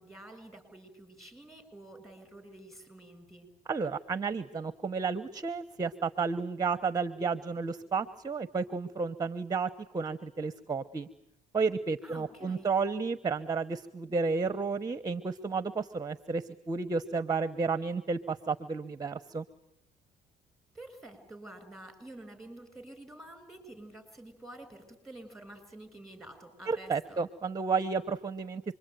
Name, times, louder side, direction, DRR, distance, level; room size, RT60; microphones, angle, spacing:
voice 1, 0.0-3.5 12.0-12.8 20.7-27.2, right 1 dB, ahead, 8 dB, 6.8 m, -49 dB
voice 2, 3.7-11.1 11.5-19.4 26.7-28.6, right 4 dB, 20° right, 12 dB, 1.0 m, -32 dB
26.5 x 23.0 x 9.2 m, 0.77 s
cardioid pair, 110°, 17 cm